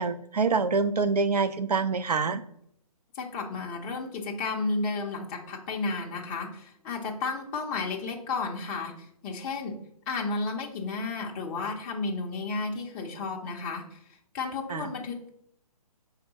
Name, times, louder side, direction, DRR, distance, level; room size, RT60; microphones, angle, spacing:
voice 1, 0.0-2.4 14.7-14.9, right 4 dB, 90° right, 11 dB, 0.5 m, -26 dB
voice 2, 3.1-9.8 10.1-14.0 14.3-15.3, left 3 dB, 20° left, -1 dB, 0.5 m, -32 dB
5.4 x 3.5 x 2.8 m, 0.71 s
figure-of-eight pair, 140°, 20 cm